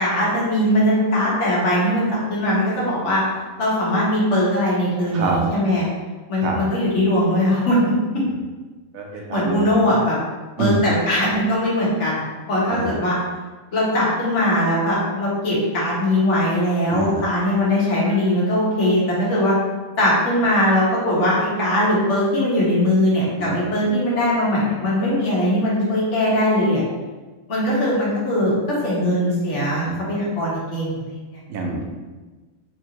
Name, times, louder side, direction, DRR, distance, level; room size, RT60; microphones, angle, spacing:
voice 1, 0.0-3.2 3.6-5.8 6.3-7.8 9.3-10.2 10.6-12.2 12.5-13.2 13.7-19.6 20.0-26.8 27.5-31.2, left 1 dB, 60° left, -6 dB, 1.4 m, -20 dB
voice 2, 8.9-9.7 10.6-10.8 12.7-12.9 16.9-17.2 23.4-23.6 29.8-29.9 31.5-32.0, right 3 dB, 85° right, 1 dB, 1.1 m, -26 dB
3.9 x 2.5 x 2.9 m, 1.3 s
omnidirectional pair, 1.4 m